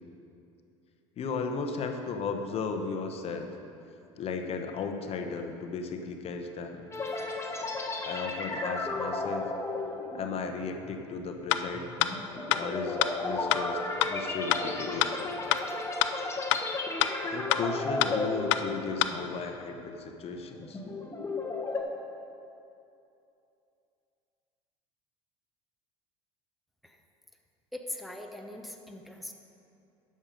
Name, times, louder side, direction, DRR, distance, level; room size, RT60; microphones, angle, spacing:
voice 1, 1.2-3.5 4.2-6.9 8.0-9.5 10.1-11.9 12.5-15.3 17.3-20.8, left 4 dB, 40° left, 5 dB, 0.9 m, -35 dB
sound 1, 6.9-19.4 19.7-20.0 20.5-21.8, left 3 dB, 15° left, 1.4 m, -34 dB
sound 2, 11.5-11.6 12.0-12.1 12.5-12.6 13.0-13.1 13.5-13.6 14.0-14.1 14.5-14.6 15.0-15.1 15.5-15.6 16.0-16.1 16.5-16.6 17.0-17.1 17.5-17.6 18.0-18.1 18.5-18.6 19.0-19.1, left 15 dB, 70° left, 0.5 m, -24 dB
voice 2, 27.7-29.3, left 1 dB, ahead, 2 dB, 0.9 m, -41 dB
11.0 x 6.6 x 5.2 m, 2.7 s
hypercardioid pair, 75°, 15 cm